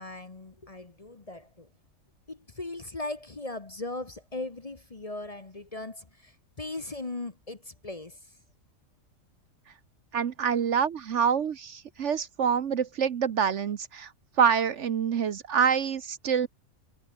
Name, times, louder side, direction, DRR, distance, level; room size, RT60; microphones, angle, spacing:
voice 1, 0.0-1.7 2.3-6.3 6.6-8.2, left 2 dB, 25° left, 1.2 m, -38 dB
voice 2, 10.1-14.1 14.4-16.5, right 7 dB, 60° right, 1.1 m, -26 dB
omnidirectional pair, 1.5 m